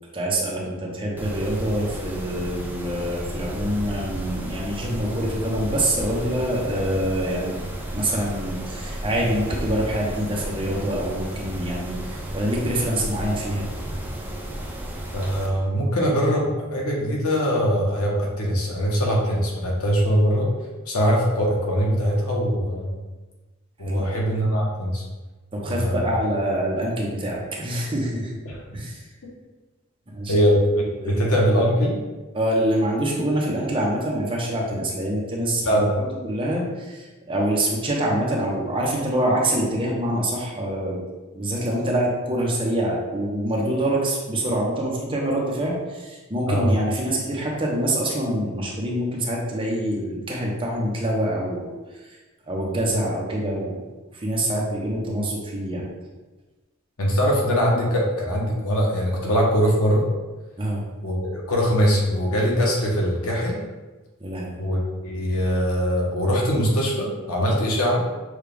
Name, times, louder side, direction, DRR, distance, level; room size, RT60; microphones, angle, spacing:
voice 1, 0.1-7.6 7.9-13.7 23.9-24.2 25.5-28.3 28.7-29.0 30.1-30.5 31.0-31.2 32.3-35.9 36.2-41.0 41.3-52.2 52.5-53.8 54.1-55.9 60.6-60.8 64.2-64.6, right 1 dB, 25° right, -3 dB, 0.9 m, -25 dB
Mechanisms, 1.2-15.5, right 1 dB, 10° right, 0.5 m, -33 dB
voice 2, 15.1-20.5 20.9-22.9 23.8-25.0 25.7-26.2 30.3-31.9 35.7-35.9 46.5-46.7 57.0-60.0 61.0-63.5 64.6-68.0, equal, 80° left, -3 dB, 1.1 m, -22 dB
6.4 x 2.4 x 3.4 m, 1.2 s
head